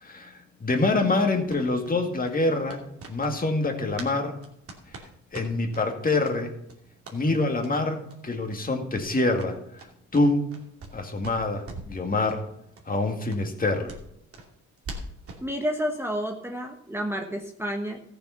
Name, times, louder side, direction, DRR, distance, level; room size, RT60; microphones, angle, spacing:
voice 1, 0.0-2.8 3.1-4.4 5.3-6.5 7.1-9.6 10.1-10.5 10.9-12.4 12.9-13.9, left 2 dB, 30° left, 4 dB, 2.2 m, -25 dB
sound 1, 1.5-4.2 4.4-5.8 6.2-6.4 6.6-7.2 7.6-7.7 8.1-8.2 8.4-8.6 8.9-11.0 11.2-12.0 12.3-12.4 12.7-12.8 13.3-15.5, right 2 dB, 50° right, 2.7 m, -43 dB
voice 2, 15.4-18.0, equal, 10° right, 3 dB, 1.3 m, -30 dB
14.5 x 6.9 x 5.8 m, 0.75 s
cardioid pair, 90°, 30 cm